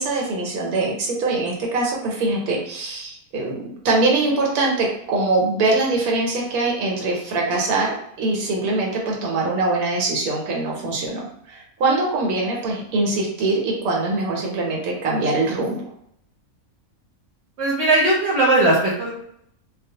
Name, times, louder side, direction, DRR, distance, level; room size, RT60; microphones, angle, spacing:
voice 1, 0.0-15.9, right 2 dB, 85° right, -1 dB, 1.1 m, -23 dB
voice 2, 17.6-19.1, right 2 dB, 60° right, -4 dB, 0.8 m, -18 dB
2.4 x 2.1 x 2.7 m, 0.72 s
omnidirectional pair, 1.5 m